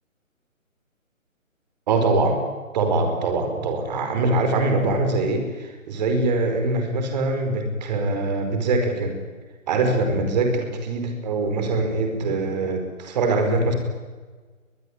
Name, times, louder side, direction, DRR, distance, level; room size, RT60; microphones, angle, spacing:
voice 1, 1.9-2.4 2.7-9.1 9.7-13.7, right 3 dB, 30° right, 5 dB, 5.0 m, -23 dB
22.0 x 21.0 x 9.7 m, 1.4 s
figure-of-eight pair, 150°, 40 cm